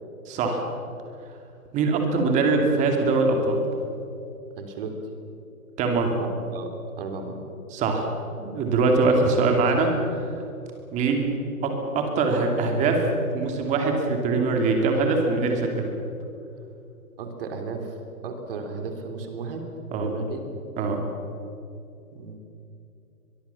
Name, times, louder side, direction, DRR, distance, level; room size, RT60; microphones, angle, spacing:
voice 1, 0.3-0.6 1.7-3.6 5.8-6.2 7.7-8.1 8.4-10.3 10.9-11.3 11.6-13.0 13.3-15.8 19.9-20.1 20.8-21.0, right 3 dB, 15° right, 3 dB, 2.7 m, -22 dB
voice 2, 4.6-5.0 6.0-6.7 7.0-7.4 17.2-18.0 18.2-19.7 20.0-20.4 22.1-22.4, right 4 dB, 40° right, 5 dB, 3.4 m, -34 dB
22.5 x 22.5 x 7.1 m, 2.7 s
hypercardioid pair, 155°, 44 cm